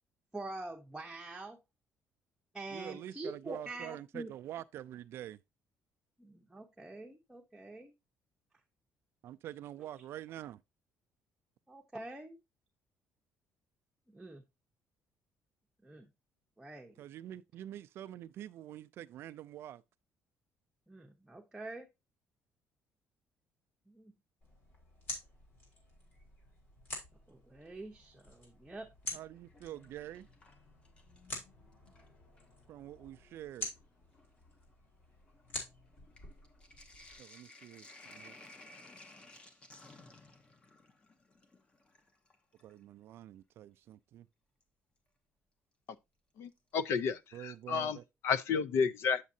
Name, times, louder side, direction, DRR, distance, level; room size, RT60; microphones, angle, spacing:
voice 1, 0.3-1.6 2.5-4.3 6.2-7.9 11.7-12.4 14.1-14.4 15.8-16.1 16.6-17.0 20.9-21.9 23.9-24.1 27.3-28.9, right 2 dB, 5° right, 0.8 m, -45 dB
voice 2, 2.7-5.4 9.2-10.6 17.0-19.8 29.1-30.3 32.7-33.7 37.2-38.4 42.6-44.3 47.3-48.0, right 12 dB, 55° right, 0.3 m, -46 dB
sound 1, 24.4-37.2, left 1 dB, 40° left, 3.9 m, -48 dB
Sink (filling or washing), 29.4-31.4 31.7-32.5 33.3-33.4 33.7-42.8 44.6-44.7 46.5-47.0 47.3-47.4 47.6-47.7, left 2 dB, 20° left, 0.9 m, -57 dB
voice 3, 46.4-48.0 48.2-49.2, left 6 dB, 55° left, 0.6 m, -31 dB
8.3 x 7.3 x 2.6 m
cardioid pair, 175°, 5 cm